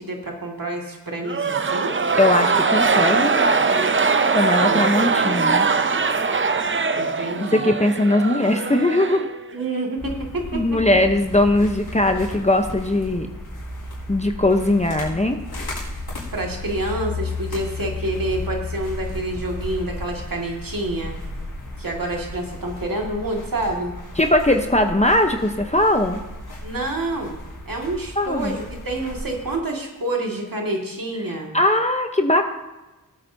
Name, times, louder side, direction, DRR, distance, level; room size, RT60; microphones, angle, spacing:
voice 1, 0.0-1.9 4.7-4.8 6.9-7.6 9.5-10.8 16.3-21.1 21.8-23.9 26.6-27.4 27.7-31.5, right 2 dB, 65° right, 0 dB, 2.1 m, -28 dB
sound 1, 1.2-9.7, right 4 dB, 35° right, 0.6 m, -21 dB
voice 2, 2.2-3.3 4.3-5.7 7.5-9.3 10.5-13.3 14.1-15.4 24.2-26.2 28.2-28.6 31.5-32.4, left 1 dB, 20° left, 4 dB, 0.8 m, -19 dB
sound 2, 10.0-29.6, left 2 dB, 90° left, 4.0 m, -34 dB
18.5 x 8.4 x 2.7 m, 1.1 s
wide cardioid pair, 55°, 37 cm